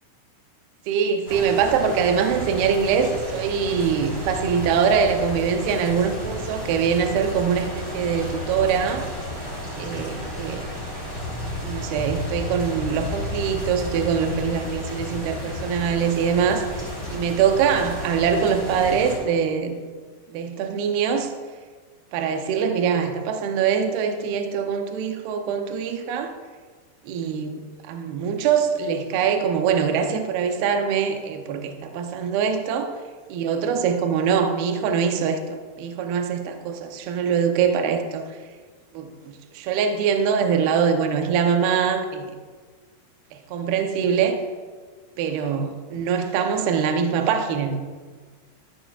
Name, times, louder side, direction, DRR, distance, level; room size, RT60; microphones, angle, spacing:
voice 1, 0.9-9.1 9.8-10.7 11.6-19.8 20.3-21.3 22.1-26.3 27.0-32.9 33.3-38.4 38.9-42.3 43.3-44.4 45.2-47.8, right 7 dB, 80° right, 5 dB, 2.3 m, -23 dB
sound 1, 1.3-19.2, left 1 dB, 15° right, 2.4 m, -32 dB
13.0 x 11.0 x 2.4 m, 1.5 s
omnidirectional pair, 5.4 m